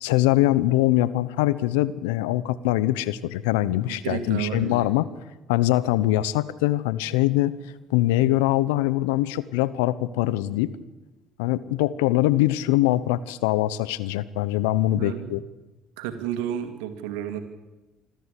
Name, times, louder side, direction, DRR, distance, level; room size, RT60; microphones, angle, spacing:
voice 1, 0.0-5.1 5.5-7.5 7.9-10.7 11.4-15.4, left 15 dB, 85° left, 17 dB, 0.9 m, -23 dB
voice 2, 3.9-4.9 14.9-15.4 16.0-17.4, right 10 dB, 80° right, 8 dB, 2.3 m, -31 dB
26.0 x 13.0 x 8.4 m, 1.1 s
hypercardioid pair, 65°, 0 cm